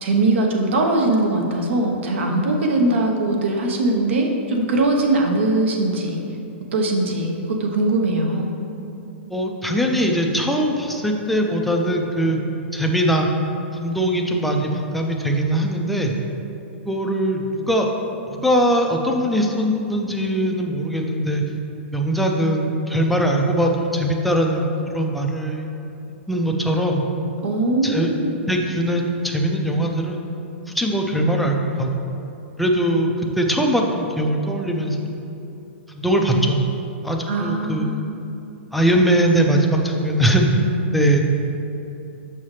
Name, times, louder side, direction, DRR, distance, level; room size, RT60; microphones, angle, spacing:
voice 1, 0.0-6.2 6.7-7.3 7.6-8.5 27.4-28.3 37.3-38.0, right 2 dB, 70° right, 1 dB, 0.9 m, -21 dB
voice 2, 9.3-12.4 12.7-13.3 13.8-16.1 16.9-17.9 18.4-21.4 21.9-25.7 26.3-27.0 27.8-28.1 28.5-30.2 30.7-32.1 32.6-35.0 35.9-36.6 37.0-37.9 38.7-40.5 40.9-41.2, right 1 dB, ahead, 0 dB, 0.4 m, -21 dB
6.4 x 5.6 x 3.2 m, 2.8 s
hypercardioid pair, 155°, 7 cm